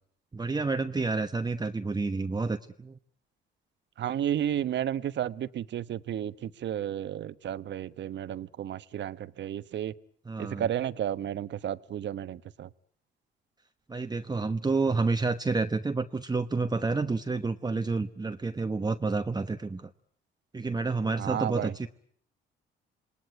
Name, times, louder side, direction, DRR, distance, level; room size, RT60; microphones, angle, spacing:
voice 1, 0.3-2.9 10.3-10.7 13.9-19.9 20.5-21.9, right 3 dB, 20° right, 7 dB, 1.1 m, -29 dB
voice 2, 4.0-9.9 10.4-12.7 21.2-21.7, right 10 dB, 65° right, 14 dB, 1.1 m, -32 dB
27.5 x 19.5 x 9.5 m, 0.63 s
cardioid pair, 90°, 20 cm